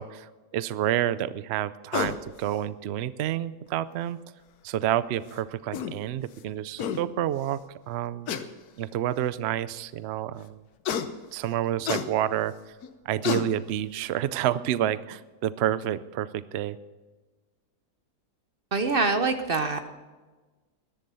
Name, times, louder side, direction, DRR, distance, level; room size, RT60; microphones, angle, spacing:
voice 1, 0.0-4.2 4.6-7.6 7.9-8.3 8.8-10.6 11.3-12.5 13.1-16.8, right 12 dB, 85° right, 16 dB, 0.5 m, -29 dB
sound 1, 1.9-2.2 3.7-3.8 5.3-5.4 5.7-5.9 6.5-6.6 6.8-7.0 8.3-8.5 9.3-9.4 10.8-11.1 11.8-12.1 12.8-12.9 13.2-13.5, left 7 dB, 70° left, 1.3 m, -29 dB
voice 2, 18.7-19.8, right 3 dB, 45° right, 8 dB, 0.7 m, -24 dB
14.0 x 11.5 x 5.6 m, 1.3 s
omnidirectional pair, 1.7 m